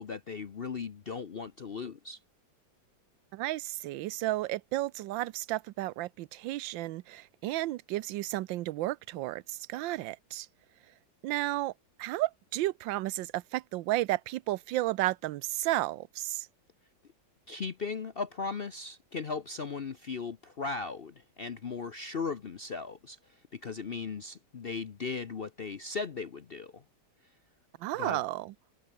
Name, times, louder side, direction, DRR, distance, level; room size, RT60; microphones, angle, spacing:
voice 1, 0.0-2.2 17.5-26.8 28.0-28.2, left 4 dB, 50° left, 0.7 m, -37 dB
voice 2, 3.3-10.5 11.2-11.7 12.0-16.5 27.8-28.5, right 16 dB, 85° right, 1.4 m, -32 dB
omnidirectional pair, 2.0 m